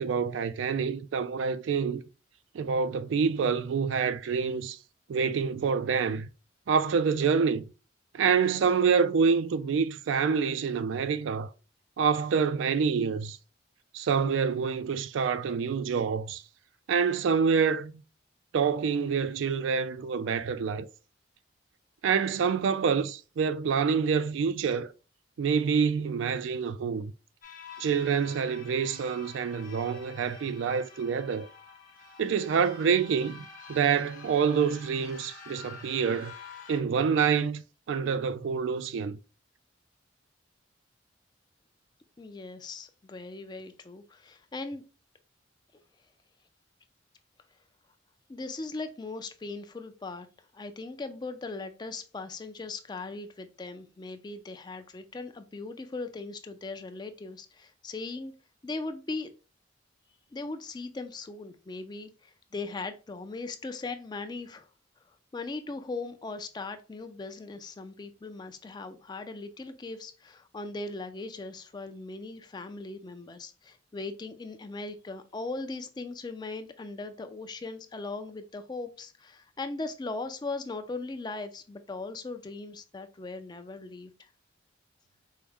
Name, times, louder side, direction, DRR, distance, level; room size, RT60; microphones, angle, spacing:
voice 1, 0.0-2.0 2.5-4.8 5.1-6.3 6.7-7.6 8.1-11.5 12.0-13.4 13.9-16.4 16.9-18.0 18.5-20.9 22.0-24.9 25.4-27.1 27.8-31.5 32.2-36.3 36.7-39.2, right 6 dB, 80° right, 0.3 m, -27 dB
sound 1, 27.4-36.8, left 5 dB, 45° left, 0.8 m, -48 dB
voice 2, 42.2-44.8 48.3-50.3 50.5-58.3 58.6-59.3 60.3-64.7 65.3-84.3, left 3 dB, 20° left, 0.3 m, -39 dB
4.5 x 2.1 x 3.4 m
head